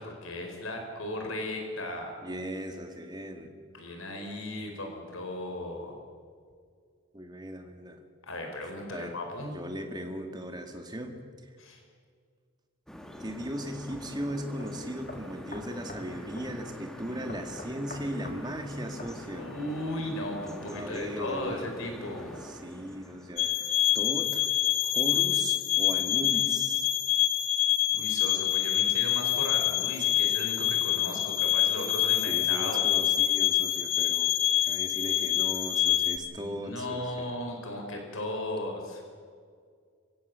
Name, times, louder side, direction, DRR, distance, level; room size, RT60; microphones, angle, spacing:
voice 1, 0.0-2.1 3.7-6.0 8.2-9.5 11.6-11.8 19.3-22.4 27.9-32.9 36.4-39.2, left 1 dB, 85° left, 3 dB, 4.4 m, -36 dB
voice 2, 2.2-3.5 7.1-8.0 8.9-9.1 9.5-11.2 13.2-19.5 20.7-21.7 22.4-24.5 24.8-26.9 32.3-34.3 34.6-37.3, equal, 20° right, 5 dB, 2.1 m, -37 dB
sound 1, 12.9-23.9, left 1 dB, 5° left, 1.6 m, -45 dB
sound 2, 13.9-14.0 14.6-14.7 15.1-16.1 16.4-16.5 17.3-18.4 19.0-19.2, left 2 dB, 40° left, 2.5 m, -44 dB
sound 3, 23.4-36.2, left 13 dB, 70° left, 1.1 m, -26 dB
26.5 x 16.0 x 6.9 m, 2.1 s
head